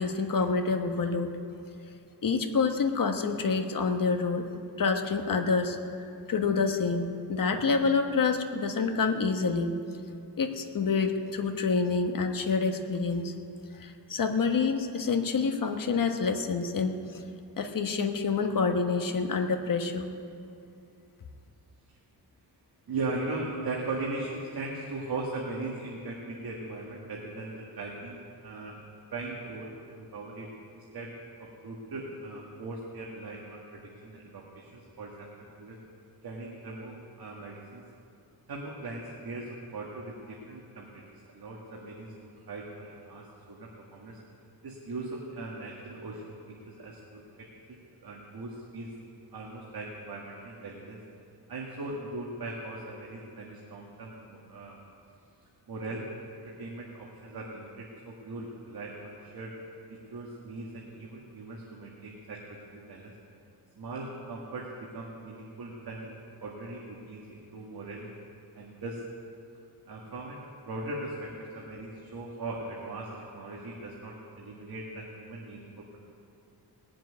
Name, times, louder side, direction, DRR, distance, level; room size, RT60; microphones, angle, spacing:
voice 1, 0.0-1.3 2.2-4.5 4.8-5.8 6.3-9.7 10.4-13.3 13.8-17.2 17.6-20.1, left 4 dB, 55° left, 5 dB, 1.3 m, -27 dB
voice 2, 22.9-28.8 29.1-30.5 30.8-31.1 31.4-35.8 36.2-37.8 38.5-44.2 44.6-48.9 49.3-51.0 51.5-54.8 55.7-56.1 56.4-59.5 59.9-63.1 63.8-68.1 68.6-69.1 69.9-76.0, right 2 dB, 65° right, -3 dB, 2.0 m, -39 dB
19.5 x 7.6 x 9.3 m, 2.6 s
wide cardioid pair, 150°, 40 cm